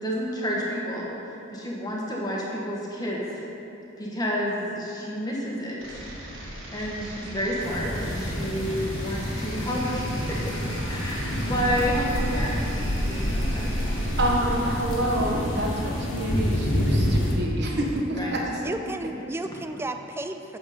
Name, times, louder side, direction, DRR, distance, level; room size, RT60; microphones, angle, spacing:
voice 1, 0.0-3.3 4.0-6.0 6.7-10.0 10.3-10.4 10.9-14.0 18.1-18.3, equal, 20° left, -4 dB, 1.4 m, -30 dB
sound 1, 5.8-15.3, right 1 dB, 75° right, 1.7 m, -41 dB
sound 2, 7.6-17.3, equal, 75° left, 1.5 m, -27 dB
voice 2, 14.2-18.6, right 1 dB, 55° right, -1 dB, 1.3 m, -27 dB
voice 3, 18.6-20.6, right 2 dB, 10° right, 7 dB, 0.3 m, -33 dB
8.2 x 7.2 x 5.1 m, 3.0 s
head